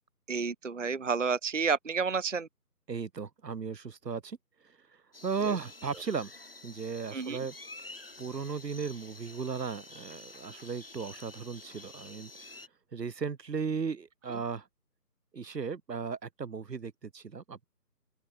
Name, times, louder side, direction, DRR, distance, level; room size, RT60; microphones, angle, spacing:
voice 1, 0.3-2.5 5.4-5.6 7.1-7.4 14.3-14.4, right 5 dB, 50° right, 0.8 m, -30 dB
voice 2, 2.9-4.4 5.2-6.3 6.6-7.5 8.2-12.3 12.9-14.6 15.3-17.6, right 5 dB, 75° right, 1.0 m, -36 dB
sound 1, 5.1-12.7, left 2 dB, 35° left, 1.1 m, -49 dB
open air
figure-of-eight pair, 170°, 49 cm